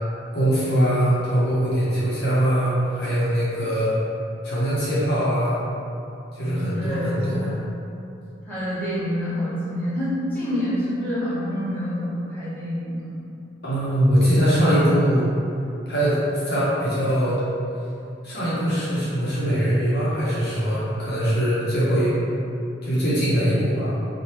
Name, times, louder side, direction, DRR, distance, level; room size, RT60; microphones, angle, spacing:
voice 1, 0.3-3.9 4.4-5.6 6.4-7.5 13.6-15.3 15.9-17.4 18.2-22.1 22.8-23.9, equal, 55° left, -9 dB, 0.7 m, -22 dB
voice 2, 6.4-7.6 8.4-13.1, equal, 10° left, -13 dB, 0.9 m, -27 dB
2.8 x 2.3 x 3.2 m, 2.7 s
head